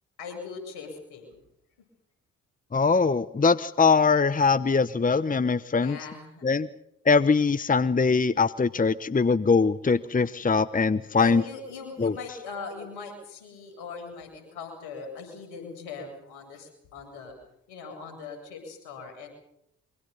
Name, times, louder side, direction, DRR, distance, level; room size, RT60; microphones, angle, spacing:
voice 1, 0.2-1.4 5.8-6.5 11.1-17.3 17.7-19.3, left 4 dB, 75° left, 4 dB, 7.9 m, -40 dB
voice 2, 2.7-6.0 6.4-6.7 7.1-11.4 12.0-12.1, left 4 dB, 20° left, 15 dB, 1.0 m, -22 dB
26.5 x 24.5 x 5.5 m, 0.78 s
hypercardioid pair, 45°, 39 cm